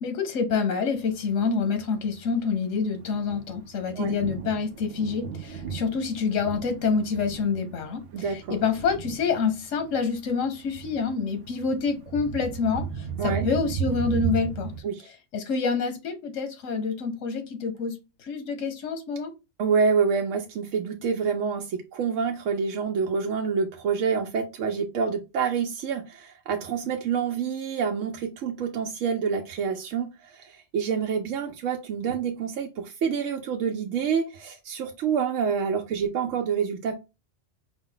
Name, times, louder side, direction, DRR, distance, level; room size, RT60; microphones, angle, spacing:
voice 1, 0.0-14.7 15.3-19.3, left 5 dB, 90° left, 8 dB, 1.2 m, -27 dB
Thunder, 1.1-14.8, right 7 dB, 60° right, 0.7 m, -36 dB
voice 2, 8.1-8.6 13.2-13.5 14.8-15.0 19.6-36.9, right 6 dB, 90° right, 3 dB, 1.0 m, -27 dB
4.9 x 2.1 x 3.8 m, 0.26 s
omnidirectional pair, 1.3 m